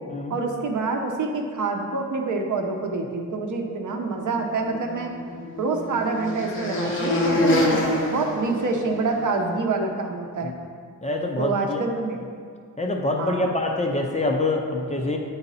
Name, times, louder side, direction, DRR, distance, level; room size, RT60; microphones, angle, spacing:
voice 1, 0.3-5.1 5.6-7.8 8.1-10.5 11.4-12.2 13.2-13.5, right 3 dB, 60° right, 2 dB, 0.8 m, -26 dB
sound 1, 4.6-9.3, left 1 dB, 35° left, 1.1 m, -26 dB
voice 2, 11.0-11.8 12.8-15.2, left 2 dB, 20° left, 1 dB, 0.5 m, -25 dB
9.5 x 4.0 x 4.1 m, 2.1 s
wide cardioid pair, 170°, 34 cm